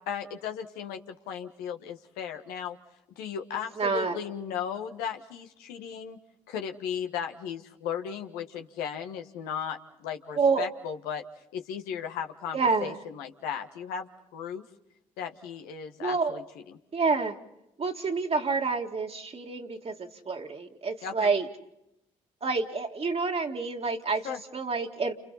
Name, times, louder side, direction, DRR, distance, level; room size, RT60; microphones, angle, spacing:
voice 1, 0.0-2.8 3.2-6.2 6.5-11.2 11.5-14.6 15.2-16.8 21.0-21.3 24.2-24.4, left 8 dB, 75° left, 6 dB, 1.5 m, -36 dB
voice 2, 3.8-4.2 10.4-10.7 12.5-13.0 16.0-16.4 16.9-17.4 17.8-21.5 22.4-25.1, right 4 dB, 40° right, 2 dB, 2.2 m, -28 dB
30.0 x 28.0 x 4.1 m, 0.87 s
hypercardioid pair, 50°, 16 cm